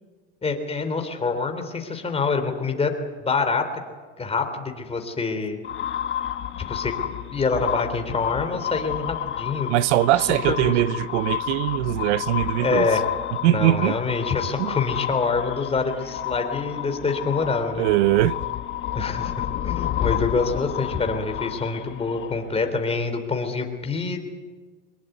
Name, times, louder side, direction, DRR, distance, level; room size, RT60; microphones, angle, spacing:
voice 1, 0.4-2.9 3.2-3.6 4.2-5.6 6.7-6.9 7.3-9.7 10.2-10.7 12.6-13.0 13.4-17.8 18.9-24.3, left 4 dB, 15° left, 3.7 m, -26 dB
sound 1, 5.6-22.7, left 11 dB, 35° left, 1.8 m, -30 dB
voice 2, 9.7-12.9 13.4-14.0 14.6-14.8 17.8-18.4, right 15 dB, 80° right, 1.0 m, -21 dB
24.0 x 21.5 x 9.5 m
supercardioid pair, 125°, 34 cm